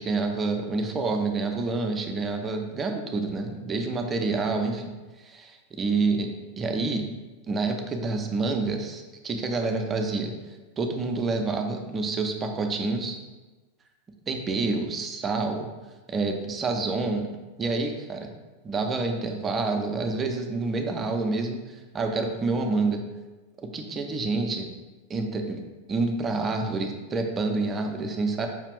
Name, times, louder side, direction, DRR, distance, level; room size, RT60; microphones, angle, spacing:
voice 1, 0.0-7.0 7.5-10.3 10.8-13.1 14.3-15.7 16.1-17.3 17.6-18.3 18.6-23.0 23.6-24.7 25.1-25.6 25.9-28.5, right 3 dB, 20° right, 4 dB, 0.4 m, -28 dB
5.0 x 2.4 x 3.4 m, 1.2 s
figure-of-eight pair, 90°, 0 cm